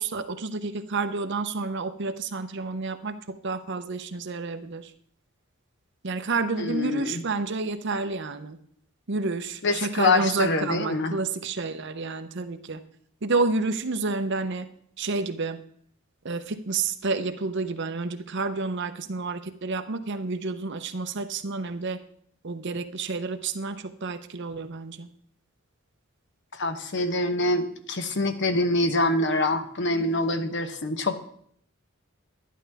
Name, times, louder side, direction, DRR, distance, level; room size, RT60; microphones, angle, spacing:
voice 1, 0.0-4.9 6.0-8.6 9.1-12.8 13.2-14.7 15.0-15.6 16.2-22.0 22.4-25.1, right 3 dB, 60° right, 9 dB, 0.8 m, -29 dB
voice 2, 6.6-7.2 9.6-11.1 26.5-31.1, left 2 dB, 60° left, 9 dB, 0.9 m, -25 dB
11.5 x 11.0 x 3.5 m, 0.63 s
head